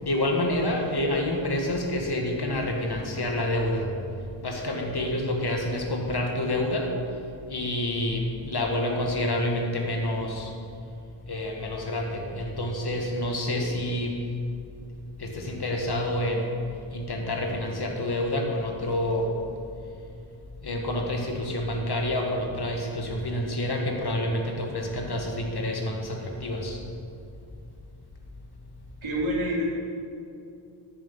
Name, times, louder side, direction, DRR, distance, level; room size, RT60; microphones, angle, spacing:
voice 1, 0.0-3.9 4.4-6.9 7.5-10.5 11.3-14.2 15.2-16.5 16.9-19.3 20.6-26.8, left 1 dB, 50° left, 1 dB, 1.7 m, -28 dB
voice 2, 29.0-29.6, equal, 75° right, -5 dB, 3.3 m, -27 dB
13.5 x 7.2 x 5.5 m, 2.5 s
wide cardioid pair, 95°, 48 cm